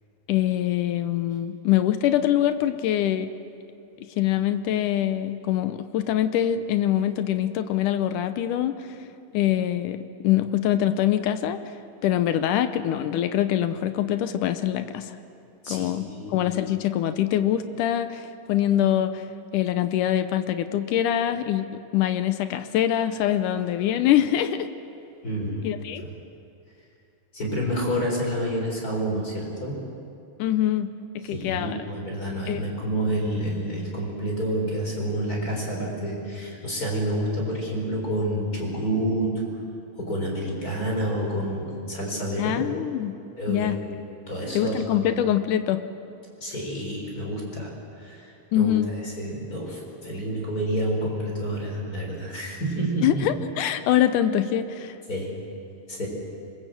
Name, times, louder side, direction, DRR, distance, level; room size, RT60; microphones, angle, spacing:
voice 1, 0.3-3.3 4.2-8.9 9.3-11.7 12.0-15.2 15.7-19.2 19.5-21.7 21.9-24.7 25.6-26.0 30.4-30.9 31.2-31.8 32.5-32.6 42.4-43.1 43.5-43.8 44.5-45.8 48.5-48.9 53.0-55.0, left 11 dB, 75° left, 10 dB, 2.1 m, -24 dB
voice 2, 15.6-16.4 25.2-25.7 27.3-29.8 31.3-39.4 40.0-42.6 43.4-43.7 44.3-45.1 46.4-48.3 48.6-53.1 55.1-55.4 55.9-56.1, right 1 dB, 25° left, -1 dB, 4.7 m, -29 dB
25.0 x 21.5 x 7.7 m, 2.6 s
omnidirectional pair, 4.1 m